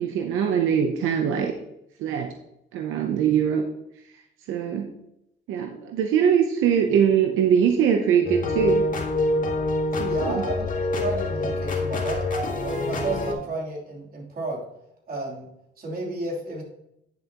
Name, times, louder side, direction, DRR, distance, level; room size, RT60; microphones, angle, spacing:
voice 1, 0.0-1.5 2.0-2.3 2.7-3.7 4.5-4.9 5.5-8.9 10.0-10.5, right 8 dB, 90° right, 4 dB, 0.7 m, -22 dB
sound 1, 8.2-13.3, left 2 dB, 40° left, 2.0 m, -26 dB
voice 2, 10.1-14.6 15.1-15.5 15.8-16.6, right 2 dB, 45° right, -3 dB, 3.3 m, -32 dB
9.7 x 6.8 x 3.0 m, 0.80 s
cardioid pair, 90°, 20 cm